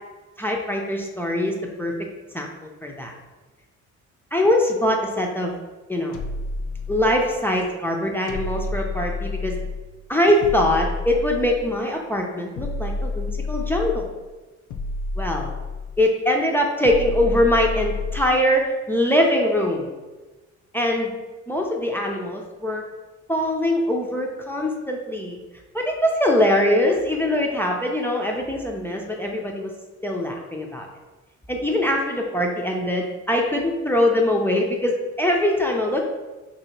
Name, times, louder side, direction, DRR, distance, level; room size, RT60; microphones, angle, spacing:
voice 1, 0.4-2.1 2.3-2.5 2.8-3.1 4.3-5.6 5.9-6.2 6.9-9.6 10.1-14.1 15.2-15.5 16.0-19.9 20.7-21.1 21.5-22.9 23.3-25.4 25.7-29.7 30.0-30.9 31.5-36.0, left 1 dB, 5° left, 1 dB, 0.5 m, -22 dB
sound 1, 6.1-7.5 8.3-9.9 10.4-11.8 12.6-14.2 14.7-16.1 16.8-18.5, left 3 dB, 80° left, 0.5 m, -30 dB
3.0 x 2.8 x 4.3 m, 1.2 s
cardioid pair, 90°, 30 cm